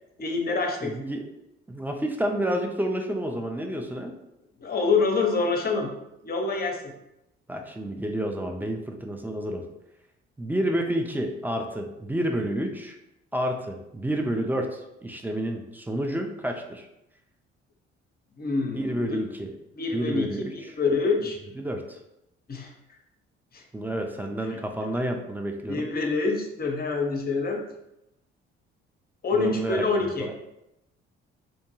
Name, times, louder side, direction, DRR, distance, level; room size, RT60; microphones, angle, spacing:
voice 1, 0.2-0.9 4.6-5.9 6.2-6.9 18.4-19.2 19.7-21.4 22.5-22.7 23.5-23.6 24.4-24.6 24.9-25.0 25.7-27.6 29.2-30.3, left 4 dB, 30° left, 2 dB, 0.6 m, -26 dB
voice 2, 0.8-1.2 1.7-4.1 7.5-9.6 10.4-13.0 13.3-16.9 18.7-19.5 19.9-20.5 21.6-22.0 23.7-25.9 29.3-30.3, right 1 dB, 5° right, 3 dB, 0.4 m, -29 dB
2.6 x 2.2 x 3.0 m, 0.86 s
hypercardioid pair, 50°, 31 cm